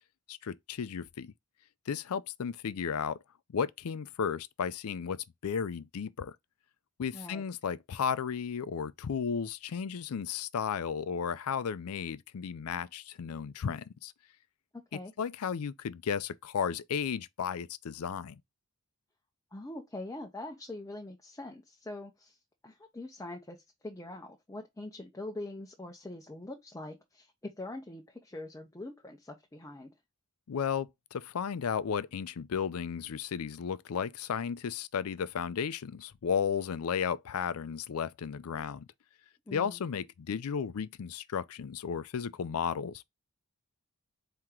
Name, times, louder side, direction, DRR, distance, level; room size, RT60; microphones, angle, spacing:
voice 1, 0.3-1.3 1.9-3.2 3.5-6.4 7.0-14.1 15.2-18.4 30.5-38.9 39.5-43.1, left 7 dB, 75° left, 0.4 m, -34 dB
voice 2, 7.1-7.4 14.7-15.1 19.5-22.4 22.6-23.6 23.8-29.9 39.5-39.8, left 2 dB, 15° left, 0.7 m, -43 dB
4.5 x 2.9 x 3.6 m
head